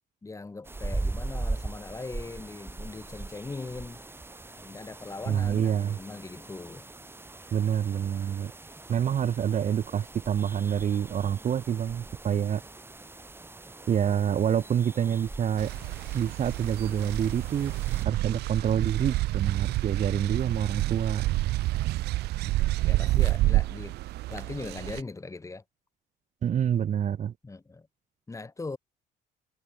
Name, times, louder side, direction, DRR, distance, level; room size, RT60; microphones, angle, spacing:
voice 1, 0.2-4.0 4.6-6.9 22.4-22.6 22.8-23.9 24.3-25.6 27.4-27.9 28.3-28.8, left 3 dB, 20° left, 3.5 m, -40 dB
sound 1, 0.6-18.1, right 2 dB, 15° right, 3.2 m, -40 dB
voice 2, 5.3-6.0 7.5-8.5 8.9-12.6 13.9-15.7 16.1-17.7 18.0-21.2 26.4-27.3, right 9 dB, 45° right, 1.4 m, -27 dB
sound 2, 15.6-25.0, right 17 dB, 80° right, 1.2 m, -28 dB
cardioid pair, 110°, 17 cm